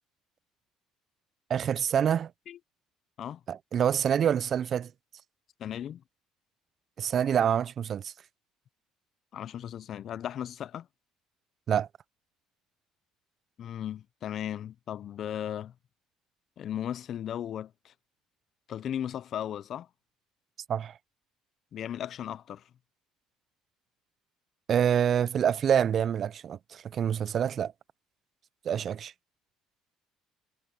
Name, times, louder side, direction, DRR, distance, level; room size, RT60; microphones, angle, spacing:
voice 1, 1.5-2.3 3.5-4.9 7.0-8.1 11.7-11.9 20.7-20.9 24.7-27.7 28.6-29.1, right 8 dB, 50° right, 0.4 m, -26 dB
voice 2, 5.6-6.0 9.3-10.9 13.6-15.7 16.6-17.9 18.7-19.9 21.7-22.6, left 10 dB, 55° left, 0.5 m, -36 dB
supercardioid pair, 90°, 0 cm